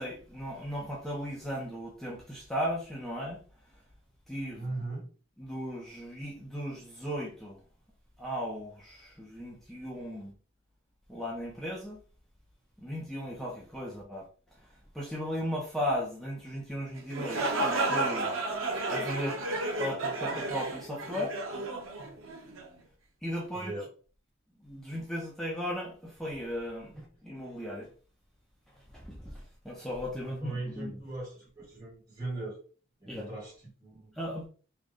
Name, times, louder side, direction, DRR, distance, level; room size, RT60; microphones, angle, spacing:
voice 1, 0.0-3.4 4.3-4.7 5.4-7.6 8.2-10.3 11.1-12.0 12.8-14.3 14.6-14.7 14.9-18.3 18.9-19.4 19.7-21.4 23.2-23.7 24.6-26.9 27.2-27.9 28.9-31.0 33.1-33.3 34.2-34.5, equal, ahead, 0.6 m, -36 dB
voice 2, 4.5-5.1 23.5-23.9 26.9-27.1 30.4-32.6 33.0-34.1, right 2 dB, 20° right, 1.4 m, -39 dB
sound 1, 17.0-22.7, right 2 dB, 90° right, 0.9 m, -32 dB
3.3 x 2.5 x 3.7 m
head